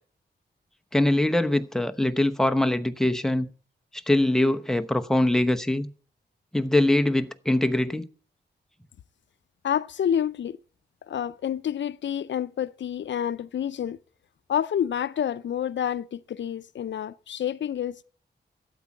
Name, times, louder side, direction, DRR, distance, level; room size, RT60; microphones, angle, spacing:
voice 1, 0.9-3.5 4.1-5.9 6.5-8.1, left 1 dB, 5° left, 0.9 m, -23 dB
voice 2, 9.6-10.6 11.1-14.0 14.5-18.0, left 9 dB, 80° left, 0.5 m, -28 dB
12.5 x 8.4 x 7.1 m
wide cardioid pair, 130°, 19 cm